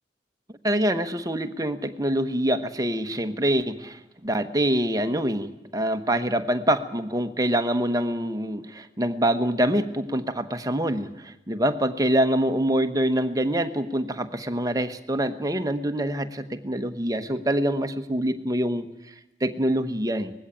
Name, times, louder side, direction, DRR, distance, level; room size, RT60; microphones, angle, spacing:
voice 1, 0.6-18.9 19.4-20.3, right 1 dB, 20° right, 8 dB, 1.1 m, -25 dB
20.0 x 15.5 x 9.0 m, 0.97 s
head